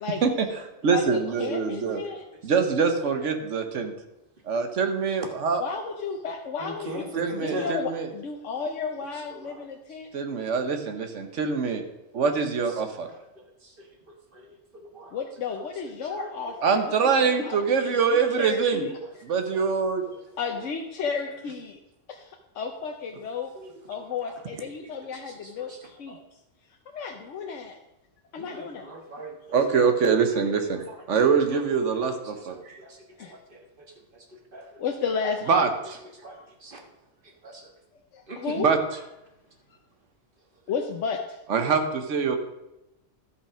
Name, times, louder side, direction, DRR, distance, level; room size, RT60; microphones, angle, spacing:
voice 1, 0.2-2.0 2.4-3.9 4.5-5.6 7.1-8.1 10.1-11.8 12.1-13.1 16.6-18.9 19.2-20.0 29.5-32.8 35.5-36.0 38.6-38.8 41.5-42.4, right 5 dB, 85° right, 6 dB, 1.4 m, -24 dB
voice 2, 0.9-2.2 5.6-10.1 15.1-16.8 17.2-17.6 17.8-18.9 20.4-21.8 22.1-22.3 22.5-23.5 23.9-26.2 26.9-27.8 28.3-28.9 33.2-33.3 34.8-35.6 36.3-36.4 38.1-38.7 40.7-41.2, left 5 dB, 90° left, 2 dB, 1.2 m, -33 dB
voice 3, 6.6-7.7 9.3-9.6 14.9-15.1 16.1-16.3 23.6-23.7 24.2-24.3 25.6-25.8 28.4-29.3 32.8-32.9 34.5-34.6 36.2-36.3 36.6-36.8 37.4-37.5 38.3-38.6, right 1 dB, 45° right, 2 dB, 1.6 m, -37 dB
13.0 x 5.7 x 5.0 m, 0.91 s
omnidirectional pair, 1.2 m